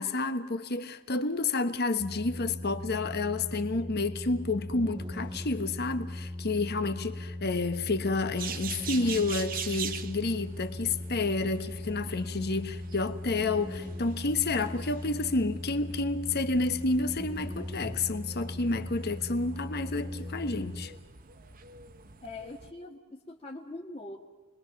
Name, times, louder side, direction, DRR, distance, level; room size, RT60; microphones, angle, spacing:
voice 1, 0.0-20.9, left 3 dB, 50° left, 1.2 m, -30 dB
sound 1, 2.0-20.9, left 1 dB, 25° right, 1.6 m, -39 dB
sound 2, 8.4-22.7, right 7 dB, 45° right, 1.0 m, -44 dB
voice 2, 22.2-24.2, left 2 dB, 30° left, 1.6 m, -42 dB
29.0 x 21.5 x 6.0 m
head